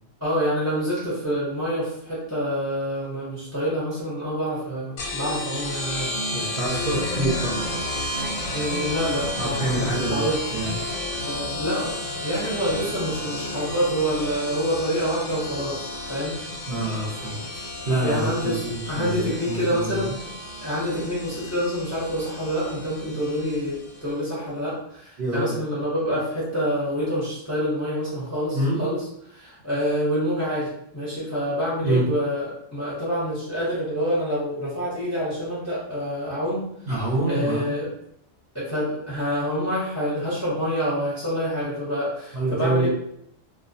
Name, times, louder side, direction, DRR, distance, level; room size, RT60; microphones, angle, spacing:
voice 1, 0.2-6.1 8.5-10.4 11.2-11.9 12.2-16.4 18.0-20.3 20.6-29.0 29.3-36.7 37.3-37.9 38.5-42.9, equal, 15° left, -8 dB, 0.5 m, -27 dB
sound 1, 5.0-24.1, left 1 dB, 85° left, 1.0 m, -32 dB
voice 2, 6.3-7.6 9.4-10.2 10.5-10.8 16.7-17.4 17.8-20.1 25.2-25.5 28.5-28.9 31.8-32.1 36.9-37.7 42.3-42.9, right 1 dB, 55° right, -7 dB, 0.7 m, -26 dB
2.2 x 2.1 x 2.6 m, 0.73 s
omnidirectional pair, 1.4 m